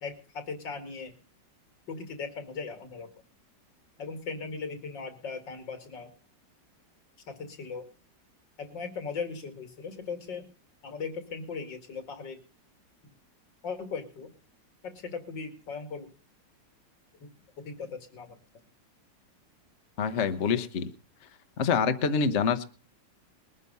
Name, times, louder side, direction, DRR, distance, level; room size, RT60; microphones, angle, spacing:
voice 1, 0.0-1.2 1.9-3.1 4.0-6.1 7.3-7.9 8.6-10.5 10.8-12.4 13.6-14.3 14.8-16.1 17.6-18.4, left 5 dB, 80° left, 7 dB, 2.9 m, -38 dB
voice 2, 20.0-20.9 21.6-22.6, left 6 dB, 45° left, 10 dB, 1.2 m, -26 dB
20.5 x 9.3 x 5.4 m, 0.37 s
omnidirectional pair, 1.9 m